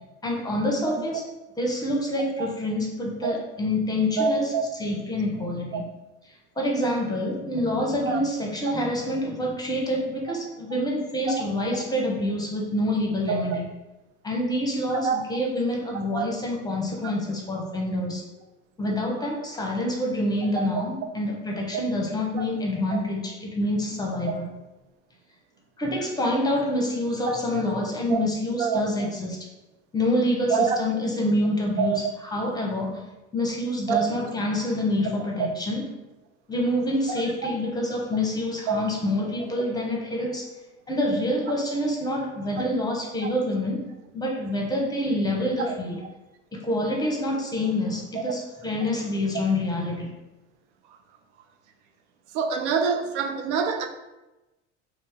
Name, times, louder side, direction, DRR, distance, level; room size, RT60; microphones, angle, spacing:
voice 1, 0.2-1.3 1.6-4.5 4.8-5.9 6.6-13.7 14.2-18.2 18.8-24.5 25.8-29.4 29.9-32.0 32.3-33.0 33.3-35.8 36.5-40.5 40.9-43.9 44.1-46.0 46.5-50.1, left 1 dB, 10° left, -1 dB, 0.7 m, -27 dB
voice 2, 4.2-4.6 5.7-5.8 8.0-8.2 13.3-13.6 14.9-15.2 16.1-16.2 21.7-21.8 22.3-22.4 22.9-23.0 27.3-27.6 28.1-28.2 28.6-29.1 30.5-30.8 31.8-32.0 33.9-34.1 35.4-35.5 37.4-37.5 38.7-38.8 43.2-43.3 45.6-45.7 48.3-48.4 52.3-53.9, right 6 dB, 75° right, 6 dB, 0.5 m, -26 dB
2.7 x 2.0 x 3.4 m, 1.0 s
hypercardioid pair, 75°, 35 cm